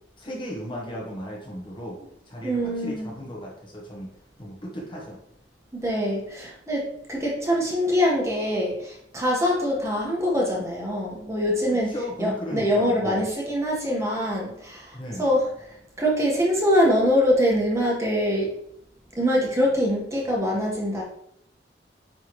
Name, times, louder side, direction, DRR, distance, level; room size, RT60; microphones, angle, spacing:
voice 1, 0.2-2.0 2.3-4.1 4.4-5.2 11.9-13.3 14.9-15.3, equal, 25° left, -3 dB, 1.2 m, -35 dB
voice 2, 2.4-3.1 5.7-14.9 15.2-15.5 16.0-18.5 19.2-21.0, equal, 15° right, -3 dB, 1.3 m, -24 dB
9.1 x 3.4 x 3.1 m, 0.74 s
head